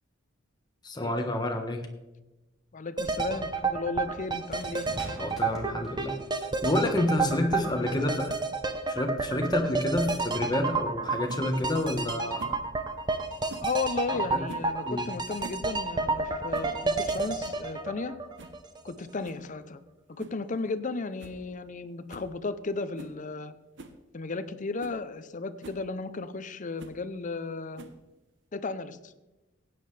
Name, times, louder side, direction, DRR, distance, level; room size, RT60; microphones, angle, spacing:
voice 1, 0.8-1.9 5.2-6.2 6.6-8.4 8.9-12.6 14.1-14.4 14.8-15.1, left 1 dB, 20° left, 4 dB, 1.3 m, -29 dB
sound 1, 1.6-1.7 4.5-6.4 7.3-7.5, equal, ahead, 2.7 m, -44 dB
voice 2, 2.7-4.9 7.7-8.1 13.6-18.2 18.8-19.8 20.1-23.5 24.1-27.8 28.5-29.1, left 3 dB, 40° left, 13 dB, 0.6 m, -34 dB
sound 2, 3.0-18.9 19.2-19.3, right 3 dB, 25° right, 0.8 m, -30 dB
sound 3, 11.3-11.4 12.4-12.6 13.5-13.7 14.4-14.7 15.2-15.7 15.9-16.0 16.5-16.8 17.1-17.2 17.4-17.7 18.4-18.6 19.2-19.5 20.2-20.4 20.8-20.9 21.2-21.4 21.7-21.8 22.1-22.3 22.9-23.2 23.8-24.0 24.5-24.6 24.8-25.0 25.6-25.8 26.8-27.0 27.8-28.1, right 2 dB, 65° right, 0.9 m, -46 dB
15.5 x 9.5 x 3.3 m, 1.1 s
head